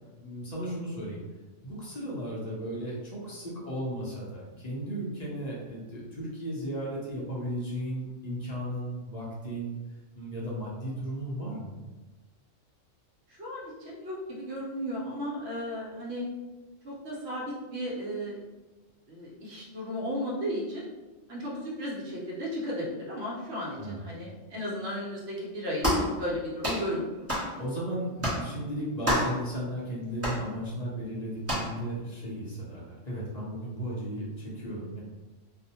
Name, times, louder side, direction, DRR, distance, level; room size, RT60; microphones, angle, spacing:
voice 1, 0.2-1.2 1.6-9.8 10.2-11.8 23.8-24.1 27.4-35.0, equal, 50° left, -5 dB, 0.5 m, -35 dB
voice 2, 13.3-16.2 16.8-18.4 19.1-20.8 21.3-27.3, equal, 60° right, -4 dB, 0.9 m, -35 dB
sound 1, 25.8-26.1 26.6-26.8 27.3-27.5 28.2-28.4 29.0-29.4 30.2-30.4 31.4-31.7, equal, 20° right, 0.5 m, -27 dB
2.5 x 2.1 x 2.8 m, 1.2 s
omnidirectional pair, 1.3 m